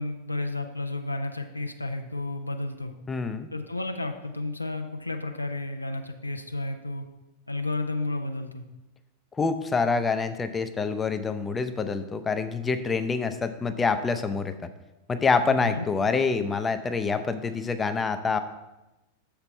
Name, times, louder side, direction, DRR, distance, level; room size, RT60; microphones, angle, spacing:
voice 1, 0.0-2.9 3.5-7.0 7.5-8.6 15.6-15.9, left 2 dB, 85° left, 5 dB, 0.5 m, -32 dB
voice 2, 3.1-3.5 9.4-14.7 15.1-18.4, left 4 dB, 15° left, 10 dB, 0.5 m, -26 dB
6.8 x 5.8 x 4.3 m, 1.0 s
figure-of-eight pair, 90°, 0 cm